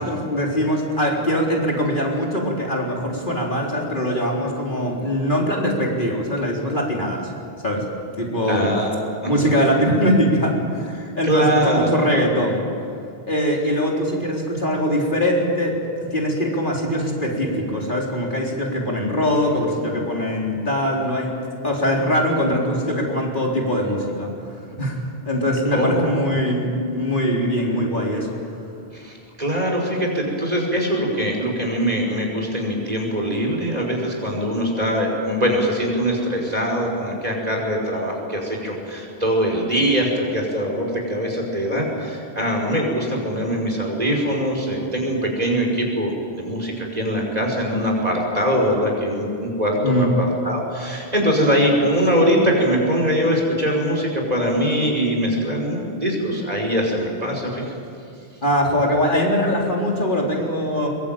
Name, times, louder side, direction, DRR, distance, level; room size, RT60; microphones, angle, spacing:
voice 1, 0.0-7.3 7.6-7.8 8.2-8.7 9.3-12.6 13.3-15.8 16.1-21.4 21.6-24.3 24.8-28.4 49.8-50.1 58.4-60.9, equal, 55° left, -1 dB, 4.1 m, -22 dB
voice 2, 8.5-8.9 11.2-11.9 25.7-26.2 28.9-57.7, equal, 40° right, 0 dB, 5.5 m, -22 dB
22.5 x 22.5 x 9.1 m, 2.5 s
omnidirectional pair, 1.0 m